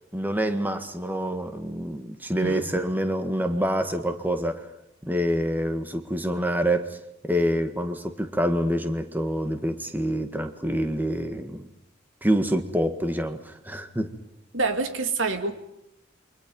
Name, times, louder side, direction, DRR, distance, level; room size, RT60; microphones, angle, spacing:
voice 1, 0.1-4.7 5.0-7.0 7.2-11.7 12.2-14.1, equal, 10° right, 7 dB, 1.7 m, -26 dB
voice 2, 14.5-15.5, right 3 dB, 85° right, 7 dB, 2.6 m, -26 dB
28.5 x 24.5 x 5.5 m, 0.84 s
head